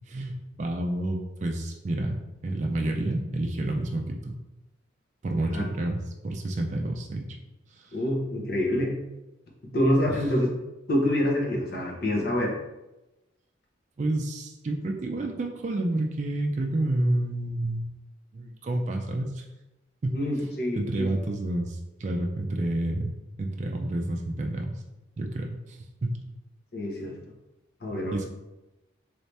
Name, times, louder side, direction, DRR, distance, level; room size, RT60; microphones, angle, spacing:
voice 1, 0.1-2.2 2.4-4.4 5.2-7.4 7.7-8.0 10.1-10.2 14.0-17.9 18.3-19.4 20.0-20.2 20.7-23.1 23.4-24.7 25.2-26.2 28.1-28.3, right 1 dB, 40° right, 2 dB, 0.3 m, -29 dB
voice 2, 7.9-8.9 9.7-10.5 10.9-12.5 20.1-21.1 26.7-27.2 27.8-28.3, left 1 dB, 50° left, -2 dB, 0.8 m, -26 dB
3.1 x 2.7 x 3.2 m, 0.99 s
head